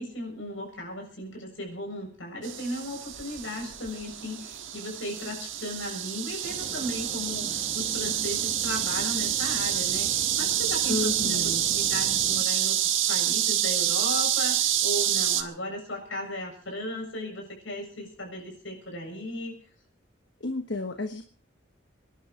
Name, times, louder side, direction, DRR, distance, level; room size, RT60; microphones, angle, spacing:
voice 1, 0.0-12.8 13.1-19.5, left 1 dB, 80° left, 1 dB, 7.3 m, -36 dB
sound 1, 2.4-15.4, right 11 dB, 85° right, 1.5 m, -27 dB
sound 2, 6.4-12.4, right 1 dB, 30° right, 1.6 m, -43 dB
voice 2, 10.9-11.6 20.4-21.2, left 2 dB, 65° left, 6 dB, 1.2 m, -31 dB
25.5 x 11.0 x 4.6 m, 0.41 s
head